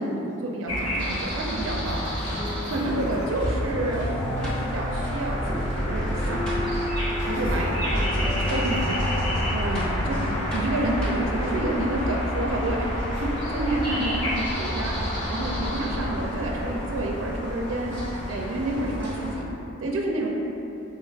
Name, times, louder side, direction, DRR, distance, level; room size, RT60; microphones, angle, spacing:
voice 1, 0.0-2.0 2.7-6.7 7.4-9.0 9.5-10.1 10.5-15.0 15.3-17.9 18.3-19.4 19.8-20.3, right 1 dB, 75° right, -1 dB, 0.4 m, -29 dB
sound 1, 0.7-19.4, equal, 25° left, 1.1 m, -29 dB
voice 2, 1.9-3.2 7.2-8.9 9.6-10.9 13.1-13.3 15.7-15.9, equal, 65° left, -12 dB, 1.4 m, -38 dB
sound 2, 2.2-5.5, left 2 dB, 15° right, 0.9 m, -41 dB
sound 3, 3.4-11.5, left 1 dB, 5° left, 0.5 m, -31 dB
4.4 x 3.0 x 2.3 m, 2.9 s
head